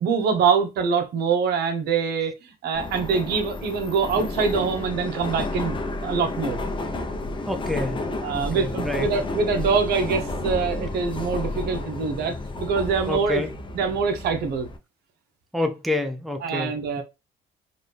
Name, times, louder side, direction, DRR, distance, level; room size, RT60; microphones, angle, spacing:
voice 1, 0.0-5.8 6.0-6.6 8.2-13.4 13.7-14.7 16.4-17.0, right 5 dB, 70° right, 1.1 m, -24 dB
Subway metro underground, 2.7-14.8, left 2 dB, 30° left, 0.8 m, -31 dB
voice 2, 7.5-8.0 8.3-9.1 13.1-13.5 15.5-17.0, left 2 dB, ahead, 0.6 m, -28 dB
4.0 x 2.6 x 3.2 m
cardioid pair, 110°, 17 cm